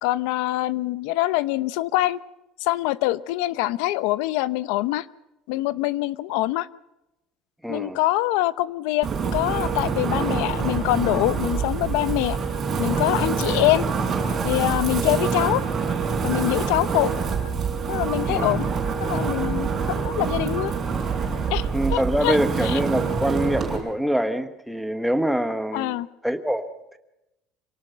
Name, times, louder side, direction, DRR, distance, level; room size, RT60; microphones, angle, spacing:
voice 1, 0.0-2.2 2.6-5.0 5.5-6.7 7.7-12.4 12.8-13.9 14.4-15.6 16.2-17.1 17.9-18.6 19.0-20.7 21.5-22.4 22.7-22.8 25.7-26.1, left 16 dB, 85° left, 17 dB, 0.8 m, -24 dB
voice 2, 7.6-8.0 18.3-18.5 21.7-27.0, equal, ahead, 8 dB, 1.1 m, -25 dB
Wind, 9.0-23.8, right 5 dB, 20° right, 5.5 m, -26 dB
26.5 x 18.5 x 5.7 m, 0.92 s
cardioid pair, 175°, 0 cm